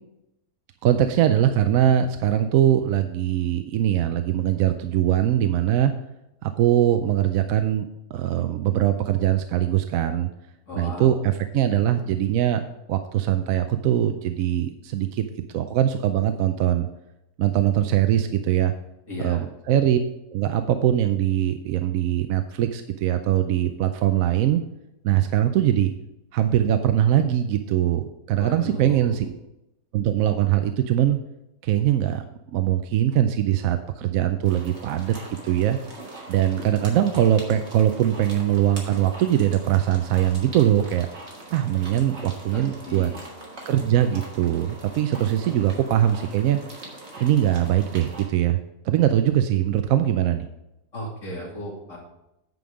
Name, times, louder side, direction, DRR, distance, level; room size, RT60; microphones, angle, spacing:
voice 1, 0.8-5.9 6.4-7.9 8.1-10.3 10.8-12.6 12.9-15.2 15.5-16.9 17.4-18.7 19.2-19.4 19.7-20.0 20.3-24.6 25.0-25.9 26.3-29.4 29.9-31.2 31.6-32.2 32.5-35.1 35.4-35.8 36.3-41.1 41.5-43.1 43.7-46.6 47.2-48.6 48.8-50.5, right 11 dB, 70° right, 8 dB, 0.9 m, -21 dB
voice 2, 10.7-11.2 19.1-19.4 28.4-29.2 42.5-43.2 50.9-52.0, left 1 dB, 50° left, -4 dB, 3.0 m, -35 dB
sound 1, 34.4-48.2, right 2 dB, 40° right, 2.1 m, -42 dB
9.4 x 5.5 x 5.0 m, 0.89 s
omnidirectional pair, 1.8 m